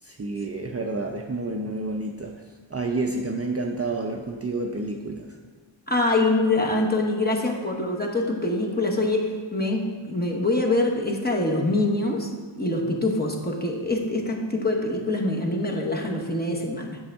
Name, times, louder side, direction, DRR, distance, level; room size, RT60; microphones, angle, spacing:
voice 1, 0.0-5.4, right 2 dB, 30° right, 1 dB, 0.5 m, -30 dB
voice 2, 5.9-17.0, left 2 dB, 20° left, 0 dB, 1.0 m, -25 dB
8.4 x 6.3 x 3.5 m, 1.5 s
wide cardioid pair, 85°, 49 cm